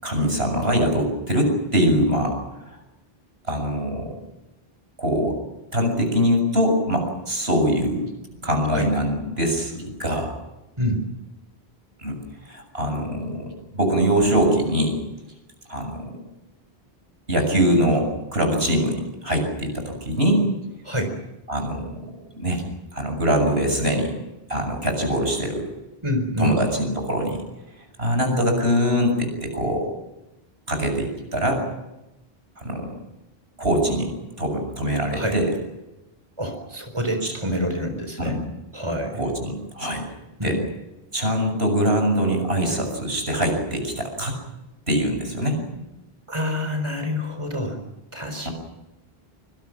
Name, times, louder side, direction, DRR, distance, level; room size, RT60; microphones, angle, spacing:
voice 1, 0.0-2.4 3.5-4.2 5.0-5.4 5.7-8.1 8.4-10.3 12.0-12.2 12.5-15.0 15.7-16.1 17.3-20.4 21.5-22.0 22.3-22.6 22.9-24.1 24.5-25.6 26.4-27.4 28.0-29.9 30.7-31.6 32.6-33.0 33.6-35.5 37.2-37.3 38.2-38.3 39.2-40.1 40.4-40.6 41.1-44.4 44.9-45.6 48.4-48.5, equal, 75° right, 4 dB, 7.0 m, -23 dB
voice 2, 26.0-26.6 35.1-35.4 36.4-38.4 38.7-39.2 40.4-40.6 46.3-47.8 48.1-48.5, equal, 30° right, 6 dB, 4.3 m, -26 dB
26.0 x 25.5 x 6.2 m, 0.96 s
omnidirectional pair, 1.0 m